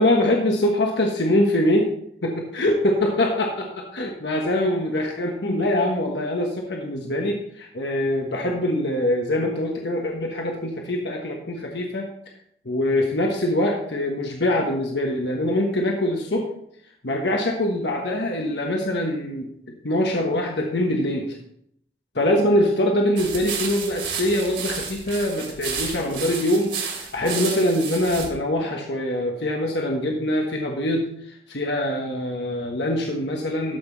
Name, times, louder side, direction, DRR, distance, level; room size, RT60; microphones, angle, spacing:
voice 1, 0.0-2.0 2.2-12.1 12.6-16.5 17.0-21.4 22.1-31.1 31.5-33.8, left 1 dB, 85° left, 1 dB, 1.3 m, -23 dB
sound 1, 23.2-28.3, right 6 dB, 85° right, 2.7 m, -32 dB
13.5 x 5.9 x 3.9 m, 0.71 s
head